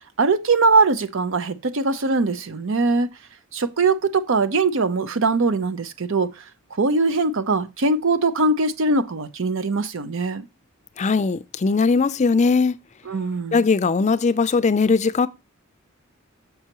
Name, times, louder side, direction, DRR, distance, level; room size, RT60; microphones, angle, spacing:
voice 1, 0.2-3.1 3.5-6.4 6.8-10.5 13.1-13.6, right 3 dB, 65° right, 0.7 m, -21 dB
voice 2, 11.0-12.8 13.5-15.3, left 4 dB, 35° left, 0.4 m, -19 dB
6.7 x 5.6 x 2.9 m
head